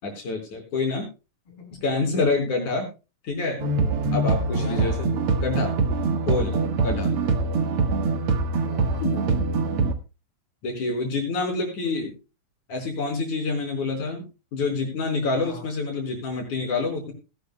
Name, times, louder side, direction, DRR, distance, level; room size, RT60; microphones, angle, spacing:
voice 1, 0.0-1.1 1.8-2.9 3.2-3.6 4.1-5.1 5.4-5.7 6.3-6.6 6.8-7.1 9.0-9.1 10.6-12.1 12.7-14.2 14.5-17.1, left 3 dB, 65° left, 3 dB, 5.8 m, -27 dB
voice 2, 1.5-1.8 4.6-4.9 8.1-9.3 15.4-15.7, left 3 dB, 45° left, 0 dB, 5.9 m, -42 dB
sound 1, 3.6-9.9, right 3 dB, 55° right, 1.9 m, -24 dB
19.5 x 12.0 x 2.2 m, 0.30 s
omnidirectional pair, 3.7 m